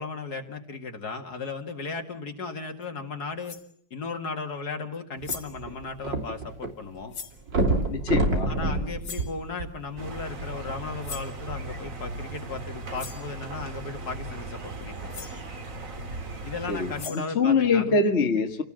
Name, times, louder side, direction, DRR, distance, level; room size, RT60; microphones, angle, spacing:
voice 1, 0.0-3.6 3.9-7.1 8.5-15.3 16.4-18.0, left 4 dB, 60° left, 5 dB, 2.5 m, -36 dB
sound 1, 2.8-2.9 3.4-3.7 4.9-5.0 5.2-5.6 7.1-7.4 9.0-9.4 11.0-11.4 12.6-12.7 13.0-13.3 14.8-14.9 15.1-15.4 16.7-17.4, left 6 dB, 90° left, 2.6 m, -39 dB
sound 2, 5.2-6.7 7.0-7.1 7.5-10.1 10.8-10.9, right 2 dB, 80° right, 3.9 m, -27 dB
voice 2, 7.9-8.5 16.7-16.9 17.4-18.6, left 4 dB, 40° left, 4 dB, 1.9 m, -23 dB
sound 3, 10.0-17.1, right 2 dB, 50° right, 2.3 m, -37 dB
29.0 x 18.5 x 7.6 m, 0.66 s
omnidirectional pair, 1.9 m